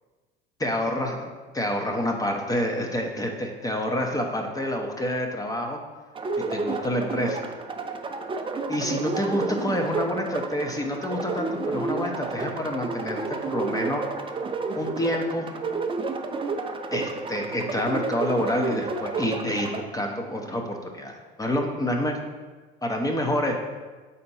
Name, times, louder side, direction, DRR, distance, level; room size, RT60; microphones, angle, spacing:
voice 1, 0.6-5.8 6.5-7.4 8.7-14.0 14.7-15.5 16.9-22.2 22.8-23.6, left 1 dB, 10° left, 2 dB, 0.8 m, -28 dB
sound 1, 6.1-19.8, right 3 dB, 15° right, 0.6 m, -31 dB
4.3 x 4.1 x 5.5 m, 1.3 s
hypercardioid pair, 80°, 29 cm